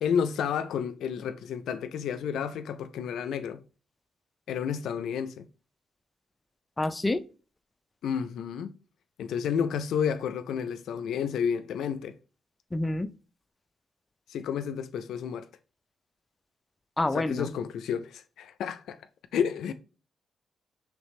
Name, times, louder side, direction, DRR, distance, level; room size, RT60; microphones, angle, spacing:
voice 1, 0.0-3.6 4.5-5.5 8.0-8.7 9.2-12.1 14.3-15.5 17.1-19.0 19.3-19.7, left 7 dB, 85° left, 0.3 m, -31 dB
voice 2, 6.8-7.2 12.7-13.1 17.0-17.5, left 2 dB, 20° left, 0.4 m, -27 dB
5.0 x 3.1 x 3.1 m
cardioid pair, 95°, 0 cm